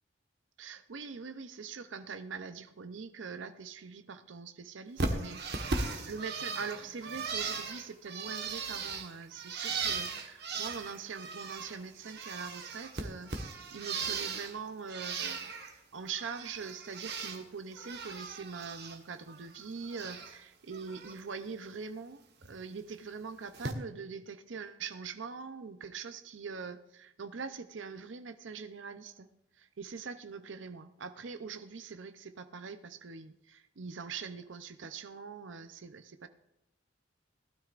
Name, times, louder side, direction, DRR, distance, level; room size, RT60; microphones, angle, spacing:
voice 1, 0.6-13.3 13.7-15.5 15.9-22.2 22.5-29.3 29.6-36.3, right 5 dB, 75° right, 10 dB, 0.6 m, -43 dB
Bird, 5.0-11.8 12.0-14.5 14.9-15.7 16.1-17.4 17.7-19.0 19.3-20.3 20.7-21.1 22.4-22.5 23.5-23.7, right 4 dB, 60° right, 1.3 m, -38 dB
19.0 x 12.5 x 2.5 m, 0.89 s
head